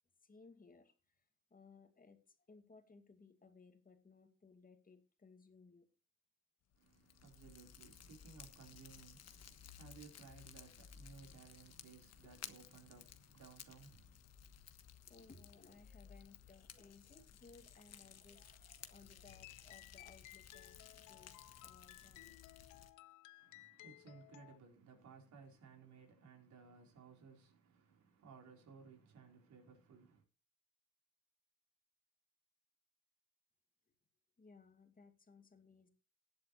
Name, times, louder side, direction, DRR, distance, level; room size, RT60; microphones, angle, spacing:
voice 1, 0.2-5.9 14.7-22.5 34.4-35.9, left 4 dB, 30° left, 2.4 m, -63 dB
Fire, 6.7-22.9, left 8 dB, 55° left, 1.4 m, -57 dB
voice 2, 6.7-14.2 23.4-30.2, right 5 dB, 70° right, 4.4 m, -59 dB
sound 1, 19.3-24.6, left 18 dB, 75° left, 0.5 m, -59 dB
19.5 x 7.8 x 3.2 m
cardioid pair, 90°, 30 cm